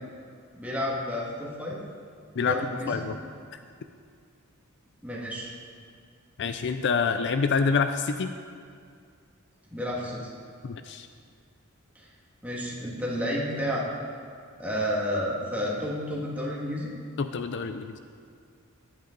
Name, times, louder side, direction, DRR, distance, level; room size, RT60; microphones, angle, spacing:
voice 1, 0.6-1.8 2.4-3.0 5.0-5.5 9.7-10.2 12.0-12.1 12.4-13.8 14.6-16.9, equal, 5° right, -5 dB, 2.0 m, -31 dB
voice 2, 6.4-8.3 10.6-11.1 17.2-18.0, left 5 dB, 55° left, 9 dB, 0.4 m, -27 dB
14.0 x 10.5 x 3.9 m, 2.2 s
head